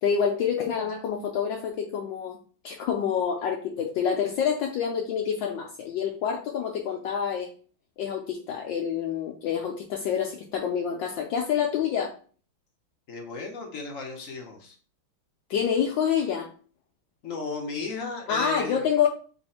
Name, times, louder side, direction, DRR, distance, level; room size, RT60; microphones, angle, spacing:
voice 1, 0.0-2.4 2.6-7.5 8.0-12.1 15.5-16.5 18.3-19.1, left 7 dB, 75° left, 1 dB, 1.2 m, -27 dB
voice 2, 13.1-14.8 17.2-18.9, left 4 dB, 55° left, 1 dB, 0.9 m, -35 dB
3.5 x 3.2 x 4.2 m, 0.41 s
omnidirectional pair, 2.2 m